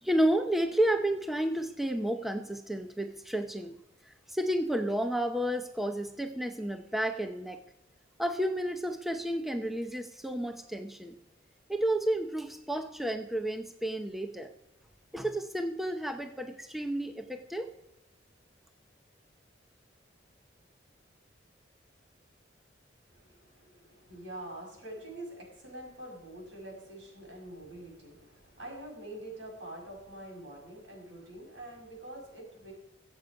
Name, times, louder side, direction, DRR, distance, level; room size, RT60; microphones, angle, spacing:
voice 1, 0.0-3.7 4.1-7.6 8.2-11.2 11.7-14.5 15.1-17.7, right 1 dB, ahead, 6 dB, 0.7 m, -31 dB
voice 2, 23.1-32.7, right 1 dB, 85° right, 0 dB, 6.2 m, -45 dB
23.5 x 8.0 x 5.2 m, 0.86 s
head